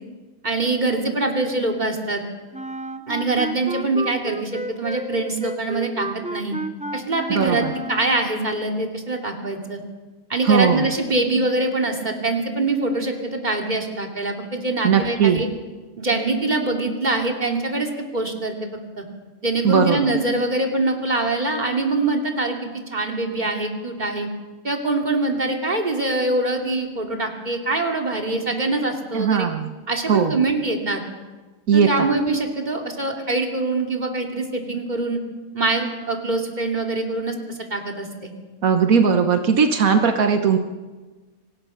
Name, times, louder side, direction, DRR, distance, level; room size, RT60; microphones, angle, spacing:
voice 1, 0.4-2.2 3.1-6.6 6.9-9.8 10.3-15.5 16.0-18.7 19.0-19.1 19.4-24.3 24.6-29.5 29.9-31.0 31.7-35.2 35.5-38.3, right 2 dB, 30° right, 2 dB, 2.8 m, -24 dB
Wind instrument woodwind instrument, 2.5-8.6, right 1 dB, 5° right, 0.6 m, -32 dB
voice 2, 7.3-7.7 10.4-10.9 14.8-15.4 19.6-20.1 29.1-29.7 30.1-30.4 31.7-32.1 38.6-40.6, right 6 dB, 80° right, 6 dB, 1.6 m, -18 dB
24.5 x 19.0 x 5.7 m, 1.3 s
omnidirectional pair, 1.5 m